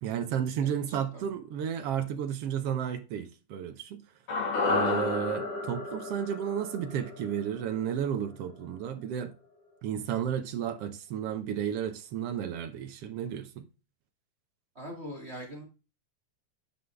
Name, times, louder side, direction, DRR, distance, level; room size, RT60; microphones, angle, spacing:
voice 1, 0.0-4.0 4.7-9.3 9.8-13.6, right 9 dB, 70° right, 1.5 m, -32 dB
voice 2, 0.6-1.3 14.7-15.6, equal, 25° right, 2.0 m, -43 dB
sound 1, 4.3-8.6 8.9-9.0, left 3 dB, 85° left, 4.3 m, -32 dB
9.6 x 5.5 x 3.3 m
omnidirectional pair, 3.5 m